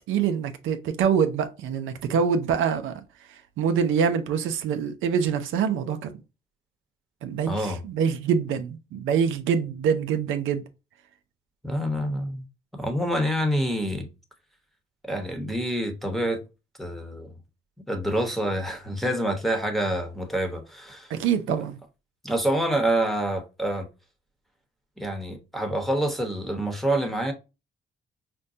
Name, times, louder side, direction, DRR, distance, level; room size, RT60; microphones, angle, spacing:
voice 1, 0.1-3.0 3.6-6.1 7.2-10.6 21.1-21.8, right 7 dB, 85° right, 0.6 m, -25 dB
voice 2, 7.5-7.8 11.6-12.4 12.7-14.1 15.1-16.4 16.8-17.3 17.9-21.1 22.2-23.9 25.0-27.3, right 1 dB, ahead, 1.0 m, -27 dB
5.2 x 2.2 x 2.6 m
cardioid pair, 90°, 20 cm